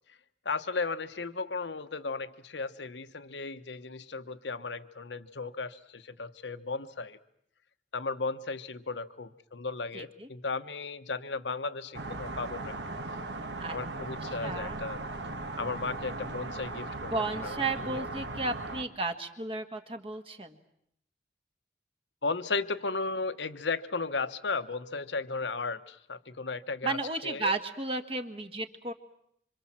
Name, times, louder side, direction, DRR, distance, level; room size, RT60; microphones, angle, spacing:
voice 1, 0.4-7.2 7.9-12.7 13.7-15.0 15.6-17.6 17.9-18.0 22.2-27.0 27.2-27.5, left 4 dB, 75° left, 11 dB, 1.1 m, -35 dB
voice 2, 9.9-10.3 13.6-13.8 14.4-14.8 17.1-20.6 26.8-28.9, right 3 dB, 30° right, 6 dB, 1.6 m, -33 dB
sound 1, 11.9-18.8, right 2 dB, 70° right, 1.7 m, -38 dB
26.5 x 26.0 x 7.5 m, 0.74 s
head